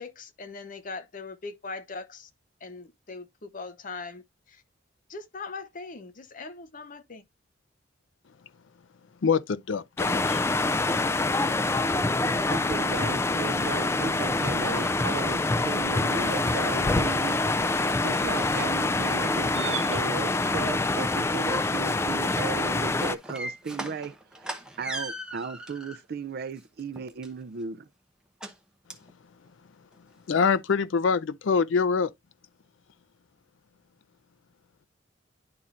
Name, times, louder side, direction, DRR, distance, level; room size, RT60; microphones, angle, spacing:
voice 1, 0.0-2.3 2.6-4.6 5.1-7.2, left 4 dB, 45° left, 0.8 m, -40 dB
voice 2, 9.2-10.4 30.3-32.1, left 5 dB, 80° left, 0.5 m, -25 dB
sound 1, 10.0-23.2, left 2 dB, 15° left, 0.3 m, -26 dB
voice 3, 12.5-17.4 18.0-27.9, right 5 dB, 55° right, 0.4 m, -36 dB
sound 2, 14.8-15.7 16.2-16.5 16.8-17.3 17.6-18.2 18.7-18.8 19.1-19.8 20.1-20.2 22.4-26.0 26.5-27.6 28.4-28.6 28.9-29.1 29.5-29.6 29.9-30.0 30.5-30.6, right 1 dB, 5° right, 0.9 m, -40 dB
sound 3, 16.3-21.8, right 10 dB, 80° right, 0.9 m, -45 dB
10.5 x 4.3 x 2.4 m
head